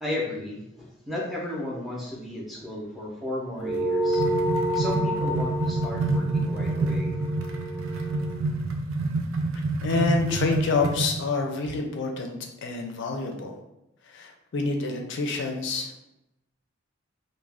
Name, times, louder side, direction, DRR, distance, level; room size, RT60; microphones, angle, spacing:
voice 1, 0.0-4.3 4.7-7.6, left 1 dB, ahead, -4 dB, 0.6 m, -34 dB
sound 1, 3.6-8.4, equal, 45° right, 1.0 m, -29 dB
sound 2, 3.7-11.2, right 2 dB, 75° right, 0.4 m, -28 dB
voice 2, 9.8-13.5 14.0-15.9, left 4 dB, 60° left, 3 dB, 0.4 m, -27 dB
2.4 x 2.1 x 3.3 m, 0.87 s
head